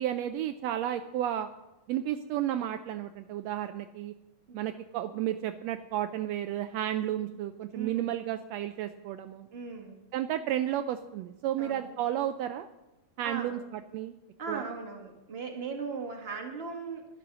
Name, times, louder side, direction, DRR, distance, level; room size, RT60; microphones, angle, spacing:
voice 1, 0.0-1.5 1.9-4.1 4.5-9.5 10.1-12.7 13.2-14.1 14.5-14.6, right 11 dB, 85° right, 9 dB, 1.5 m, -32 dB
voice 2, 7.7-8.1 9.5-10.0 11.6-11.8 13.2-13.6 14.4-17.1, right 5 dB, 25° right, 1 dB, 1.7 m, -38 dB
12.0 x 12.0 x 6.1 m, 1.0 s
omnidirectional pair, 3.6 m